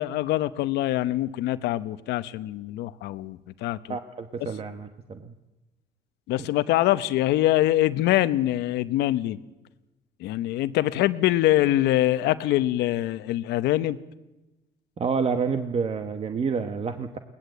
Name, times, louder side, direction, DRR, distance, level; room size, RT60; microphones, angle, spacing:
voice 1, 0.0-4.0 6.3-9.4 10.2-14.0, left 15 dB, 85° left, 14 dB, 0.9 m, -24 dB
voice 2, 3.9-5.3 15.0-17.2, right 5 dB, 35° right, 8 dB, 1.1 m, -28 dB
22.0 x 19.0 x 8.0 m, 1.0 s
cardioid pair, 110°, 17 cm